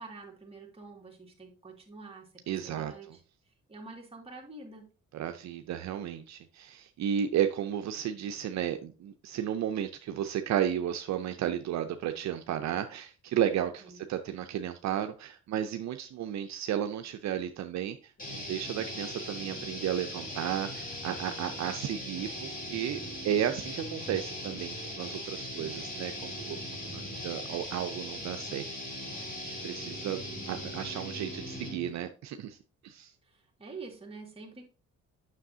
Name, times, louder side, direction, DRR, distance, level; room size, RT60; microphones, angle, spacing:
voice 1, 0.0-3.2 3.7-4.8 13.8-14.0 30.1-30.5 33.2-34.6, right 3 dB, 20° right, 0 dB, 2.0 m, -47 dB
voice 2, 2.5-3.2 5.1-28.7 29.1-32.6 32.8-33.1, right 10 dB, 65° right, 7 dB, 0.6 m, -33 dB
sound 1, 18.2-31.9, left 1 dB, 30° left, 3.0 m, -39 dB
7.4 x 6.2 x 2.7 m, 0.35 s
cardioid pair, 90°, 30 cm